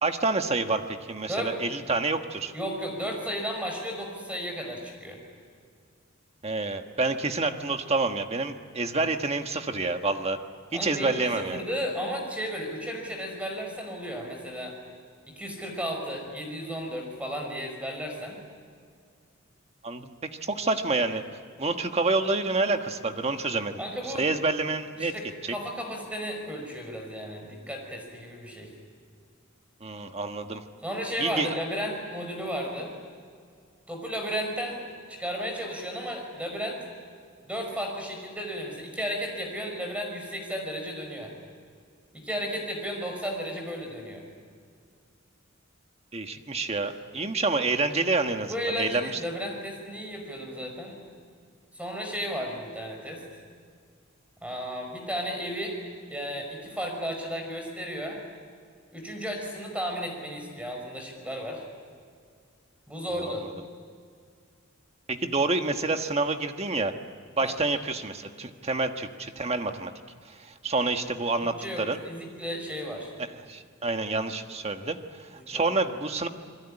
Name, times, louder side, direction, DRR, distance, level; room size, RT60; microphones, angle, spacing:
voice 1, 0.0-2.5 6.4-10.4 10.7-11.6 19.8-21.2 21.6-23.8 24.2-25.1 25.4-25.5 29.8-30.6 31.2-31.5 46.1-49.2 65.1-66.9 67.4-69.9 70.3-72.0 73.5-76.3, right 3 dB, 30° right, 6 dB, 1.4 m, -28 dB
voice 2, 2.5-5.2 10.7-14.8 15.3-18.4 23.8-24.3 25.0-28.7 30.8-32.9 33.9-34.8 35.1-36.8 37.4-41.3 42.1-44.2 48.5-51.0 51.7-53.2 54.4-55.7 56.1-58.2 58.9-61.6 62.9-63.4 67.4-67.6 71.4-73.1 75.3-75.7, equal, 5° right, 2 dB, 5.5 m, -34 dB
28.5 x 21.0 x 9.9 m, 2.1 s
head